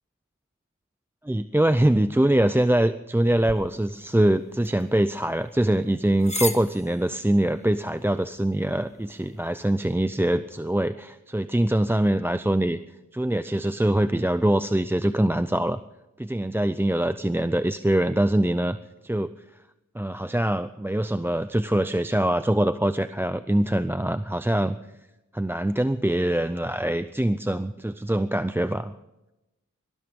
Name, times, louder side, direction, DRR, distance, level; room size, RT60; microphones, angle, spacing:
voice 1, 1.2-12.8 13.1-15.8 16.2-18.8 19.0-19.3 19.9-24.8 25.3-28.9, right 1 dB, 5° right, 12 dB, 0.5 m, -23 dB
sound 1, 3.4-9.9, left 2 dB, 20° left, 1.5 m, -39 dB
19.0 x 14.0 x 5.2 m, 0.96 s
wide cardioid pair, 60°, 32 cm